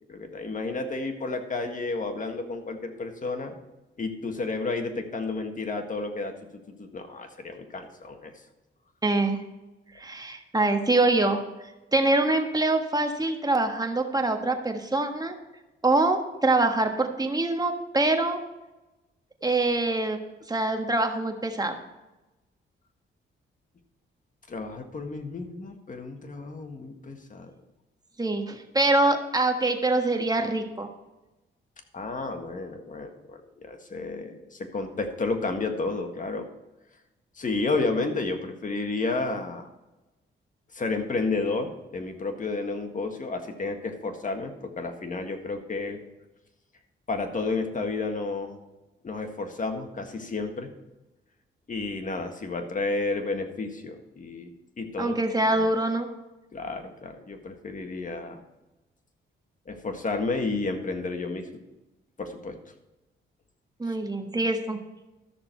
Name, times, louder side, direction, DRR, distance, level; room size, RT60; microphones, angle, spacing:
voice 1, 0.1-3.5 4.0-6.3 6.8-8.3 24.5-27.5 31.9-36.5 37.3-39.7 40.7-46.0 47.1-48.6 49.0-50.7 51.7-55.1 55.5-55.6 56.5-58.4 59.6-61.5 62.2-62.6 63.9-64.0, left 3 dB, 40° left, 5 dB, 1.7 m, -31 dB
voice 2, 9.0-9.4 10.0-11.4 11.9-15.3 15.8-18.4 19.4-20.2 20.5-21.8 28.2-30.9 55.0-56.1 63.8-64.8, right 2 dB, 20° right, 4 dB, 1.5 m, -24 dB
13.5 x 6.5 x 4.6 m, 1.0 s
cardioid pair, 80°, 21 cm